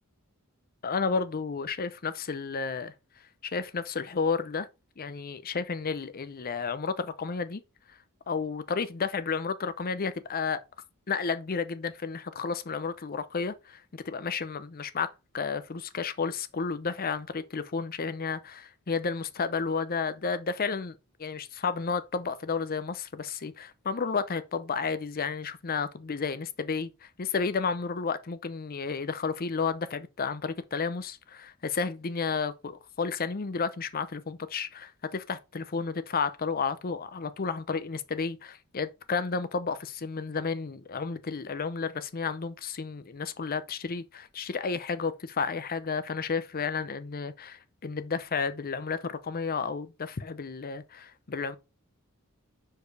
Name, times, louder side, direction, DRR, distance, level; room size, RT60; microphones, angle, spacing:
voice 1, 0.8-2.9 3.4-4.7 5.0-7.6 8.3-10.6 11.1-51.6, left 5 dB, 45° left, 0.6 m, -32 dB
5.0 x 4.7 x 4.7 m
head